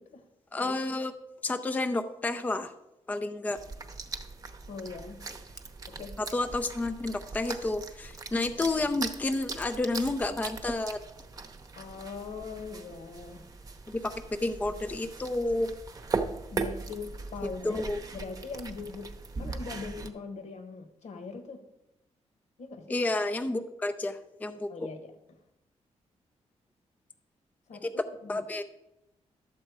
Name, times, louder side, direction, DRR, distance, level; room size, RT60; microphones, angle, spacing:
voice 1, 0.5-1.1 1.4-2.7 3.1-3.6 6.2-11.0 13.9-14.1 14.4-15.8 17.6-18.0 22.9-24.9 27.8-28.6, left 2 dB, 15° left, 8 dB, 0.4 m, -30 dB
sound 1, 3.5-20.1, right 4 dB, 30° right, 0.8 m, -39 dB
voice 2, 4.7-5.2 5.9-6.2 11.8-13.5 16.5-17.8 18.1-19.1 19.4-21.6 22.6-22.9 24.7-25.1 27.7-28.4, left 4 dB, 75° left, 7 dB, 1.3 m, -41 dB
11.5 x 7.5 x 4.7 m, 0.91 s
wide cardioid pair, 145°, 12 cm